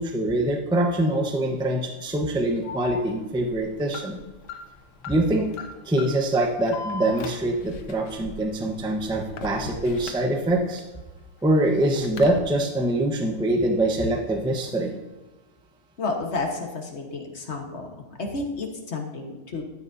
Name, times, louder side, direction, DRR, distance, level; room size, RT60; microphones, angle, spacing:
voice 1, 0.0-4.2 5.1-10.8 11.4-14.9, right 1 dB, 5° right, 2 dB, 0.4 m, -24 dB
Alarm, 2.6-10.8 11.2-12.4, left 4 dB, 60° left, 1.3 m, -39 dB
voice 2, 16.0-17.9 18.2-19.6, left 3 dB, 35° left, 2 dB, 1.4 m, -31 dB
13.5 x 9.2 x 2.8 m, 1.1 s
omnidirectional pair, 2.3 m